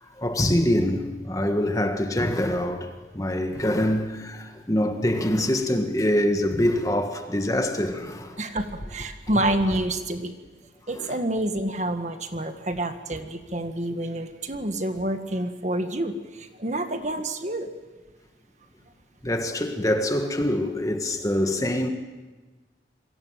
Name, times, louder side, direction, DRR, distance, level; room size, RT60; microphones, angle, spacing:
voice 1, 0.0-8.4 11.0-11.1 19.2-21.9, left 1 dB, 20° left, 1.7 m, -25 dB
voice 2, 8.4-10.3 10.9-17.7, right 1 dB, 40° right, 1.8 m, -28 dB
27.5 x 23.5 x 7.5 m
head